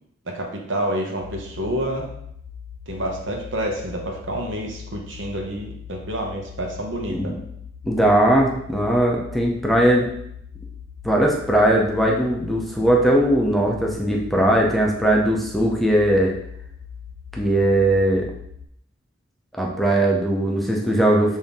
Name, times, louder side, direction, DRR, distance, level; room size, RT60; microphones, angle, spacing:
voice 1, 0.3-2.1 2.9-7.3, right 1 dB, 70° right, 1 dB, 0.9 m, -28 dB
sound 1, 1.2-18.7, left 7 dB, 70° left, 0.4 m, -40 dB
voice 2, 7.8-10.1 11.0-16.3 17.3-18.3 19.6-21.4, right 1 dB, ahead, -2 dB, 0.6 m, -19 dB
5.6 x 2.7 x 3.5 m, 0.74 s
head